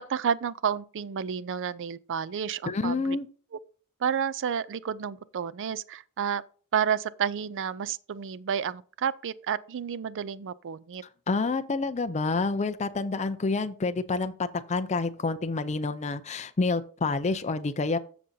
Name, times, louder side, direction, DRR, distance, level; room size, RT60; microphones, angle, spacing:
voice 1, 0.1-3.2 4.0-6.4 6.7-11.0, right 7 dB, 55° right, 0.4 m, -30 dB
voice 2, 2.7-3.3 11.3-14.3 14.7-18.0, left 3 dB, 30° left, 0.5 m, -28 dB
14.5 x 5.1 x 2.7 m
head